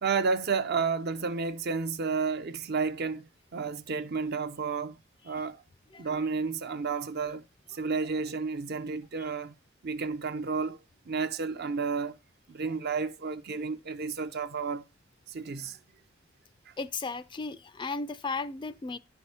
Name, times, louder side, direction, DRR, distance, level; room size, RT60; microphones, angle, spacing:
voice 1, 0.0-5.0 5.2-5.6 6.0-7.4 7.7-9.5 9.8-10.8 11.1-12.1 12.5-14.8 15.3-15.8 16.7-16.8, right 5 dB, 55° right, 0.6 m, -31 dB
voice 2, 16.8-19.0, left 4 dB, 25° left, 0.4 m, -35 dB
10.5 x 4.7 x 4.2 m
head